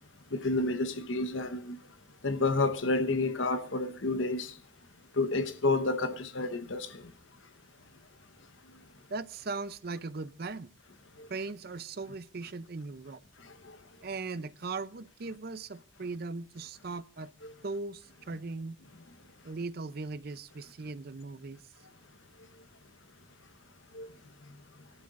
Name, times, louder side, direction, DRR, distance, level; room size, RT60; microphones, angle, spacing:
voice 1, 0.3-1.8 2.2-4.5 5.2-7.0 17.4-17.5 23.9-24.1, left 2 dB, 85° left, 1.1 m, -30 dB
voice 2, 9.1-10.7 11.3-13.2 14.0-17.3 17.6-18.8 19.4-21.6, right 3 dB, 50° right, 0.6 m, -38 dB
22.0 x 12.0 x 2.5 m
head